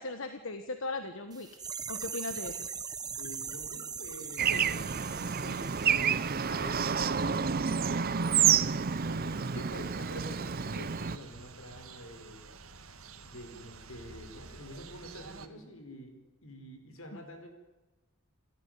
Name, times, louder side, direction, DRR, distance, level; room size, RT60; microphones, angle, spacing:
voice 1, 0.0-1.5 1.9-2.8 4.5-4.6 17.1-17.2, left 3 dB, 65° left, 8 dB, 1.5 m, -38 dB
sound 1, 1.3-7.0 7.2-7.3, right 6 dB, 20° right, 0.9 m, -41 dB
voice 2, 3.0-8.6 9.1-12.5 13.2-17.5, equal, 85° left, 6 dB, 4.9 m, -47 dB
Bird / Traffic noise roadway noise, 4.4-11.2, right 7 dB, 45° right, 0.7 m, -29 dB
sound 2, 4.5-15.5, right 4 dB, 85° right, 1.9 m, -50 dB
28.5 x 14.0 x 9.5 m, 1.1 s
head